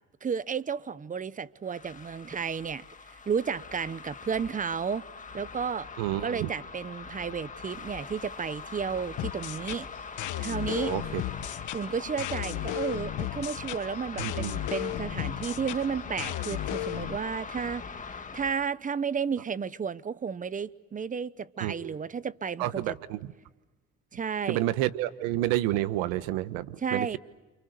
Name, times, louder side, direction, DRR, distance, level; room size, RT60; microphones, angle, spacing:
voice 1, 0.2-2.8 3.3-5.0 5.3-5.9 6.2-9.9 10.4-10.9 11.7-17.8 18.3-23.0 24.1-24.6 26.8-27.2, right 6 dB, 25° right, 1.0 m, -32 dB
sound 1, 1.6-18.7, left 5 dB, 25° left, 1.8 m, -42 dB
voice 2, 6.0-6.5 10.8-11.2 14.2-14.6 21.6-22.0 22.6-23.3 24.5-27.2, right 15 dB, 90° right, 1.4 m, -30 dB
sound 2, 9.2-17.2, left 14 dB, 60° left, 1.4 m, -34 dB
29.5 x 28.5 x 6.6 m
cardioid pair, 105°, 34 cm